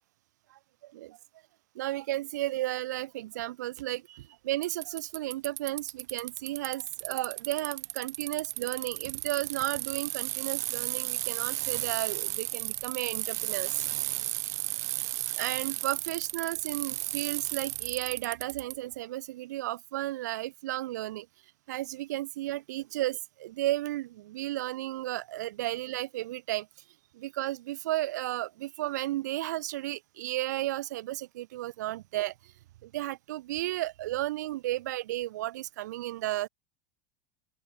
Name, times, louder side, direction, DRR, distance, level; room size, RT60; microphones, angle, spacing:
voice 1, 0.5-1.2 1.7-13.8 15.4-21.3 21.7-26.7 27.1-32.5 32.8-36.5, right 16 dB, 85° right, 0.7 m, -33 dB
Bicycle, 4.6-18.7, right 18 dB, 70° right, 1.3 m, -34 dB
open air
supercardioid pair, 170°, 9 cm